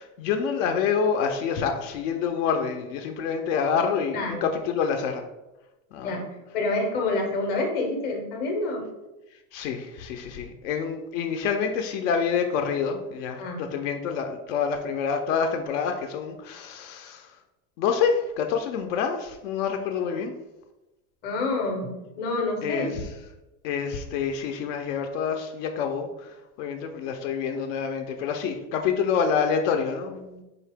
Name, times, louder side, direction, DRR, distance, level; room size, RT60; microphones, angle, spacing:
voice 1, 0.0-5.2 5.9-6.2 9.5-17.3 17.8-20.3 22.6-22.9 23.6-30.4, left 6 dB, 65° left, 5 dB, 0.5 m, -27 dB
voice 2, 4.1-4.4 6.0-6.2 6.5-8.9 13.4-13.6 21.2-22.9, left 2 dB, 25° left, 2 dB, 0.6 m, -27 dB
4.1 x 2.8 x 3.4 m, 1.0 s
supercardioid pair, 170°, 42 cm